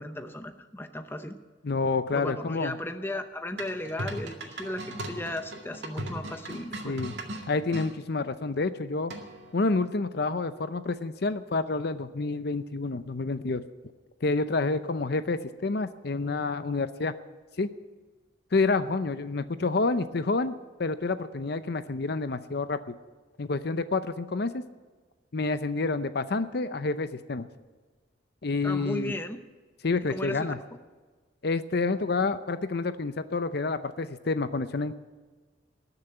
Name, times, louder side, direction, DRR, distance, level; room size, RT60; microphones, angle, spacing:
voice 1, 0.0-1.4 2.1-7.0 28.6-29.4 30.1-30.5, left 1 dB, 10° left, 7 dB, 0.7 m, -35 dB
voice 2, 1.6-2.7 6.8-7.2 7.5-9.1 9.5-13.6 14.2-17.1 17.6-17.7 18.5-20.5 20.8-22.9 23.4-24.6 25.3-27.5 28.4-29.1 29.8-30.6 31.4-35.0, left 3 dB, 55° left, 11 dB, 0.6 m, -28 dB
sound 1, 3.6-7.9 9.1-9.5, right 1 dB, 60° right, 2.2 m, -38 dB
19.5 x 6.9 x 9.0 m, 1.3 s
head